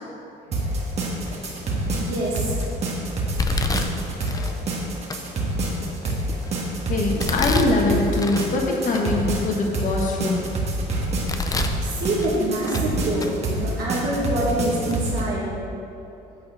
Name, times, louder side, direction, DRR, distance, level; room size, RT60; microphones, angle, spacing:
sound 1, 0.5-15.2, right 2 dB, 40° right, 1.6 m, -27 dB
Domestic sounds home sounds, 1.3-1.6 2.2-2.6 3.4-4.5 5.1-5.2 5.8-6.6 7.2-8.5 8.9-9.0 9.6-10.6 11.0-11.8 12.2-12.9 13.2-13.3 14.1-14.2 14.9-15.0 15.4-15.5, left 3 dB, 20° left, 0.6 m, -29 dB
voice 1, 2.0-2.6 11.8-15.5, right 1 dB, 75° right, -7 dB, 2.0 m, -25 dB
voice 2, 6.9-10.5, left 2 dB, 50° left, 0 dB, 1.3 m, -23 dB
8.5 x 4.4 x 7.3 m, 2.8 s
cardioid pair, 110°, 17 cm